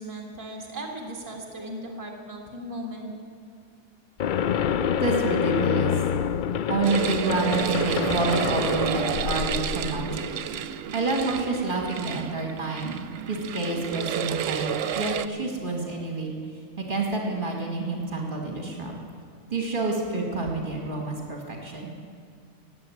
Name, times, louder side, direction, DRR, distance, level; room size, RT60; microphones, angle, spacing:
voice 1, 0.0-3.1, right 1 dB, 15° right, -1 dB, 1.8 m, -37 dB
sound 1, 4.2-10.3, left 8 dB, 60° left, 0.5 m, -27 dB
voice 2, 5.0-6.0 6.7-10.2 10.9-13.0 13.3-16.3 16.8-18.9 19.5-21.9, right 3 dB, 40° right, 0 dB, 2.2 m, -28 dB
sound 2, 6.8-15.3, right 9 dB, 90° right, 1.0 m, -30 dB
17.0 x 7.8 x 10.0 m, 2.2 s
omnidirectional pair, 1.3 m